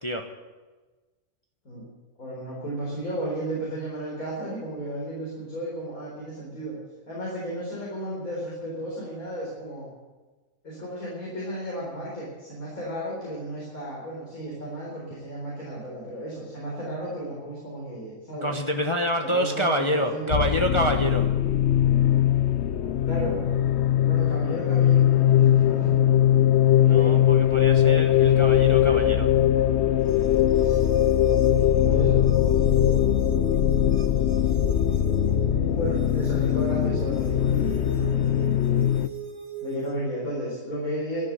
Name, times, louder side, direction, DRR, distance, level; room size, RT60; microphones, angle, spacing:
voice 1, 2.2-6.8 7.1-9.9 10.6-18.5 19.2-20.3 23.1-23.5 24.1-26.3 26.8-27.2 30.6-30.9 31.5-33.3 35.4-38.2 39.6-41.2, right 1 dB, 85° left, -5 dB, 4.6 m, -34 dB
voice 2, 18.4-21.3 26.8-29.3, equal, 25° left, 3 dB, 1.0 m, -27 dB
sound 1, 20.3-39.1, left 11 dB, 60° left, 0.8 m, -21 dB
sound 2, 30.0-40.0, right 7 dB, 65° right, 2.3 m, -39 dB
13.0 x 10.5 x 9.2 m, 1.3 s
omnidirectional pair, 1.5 m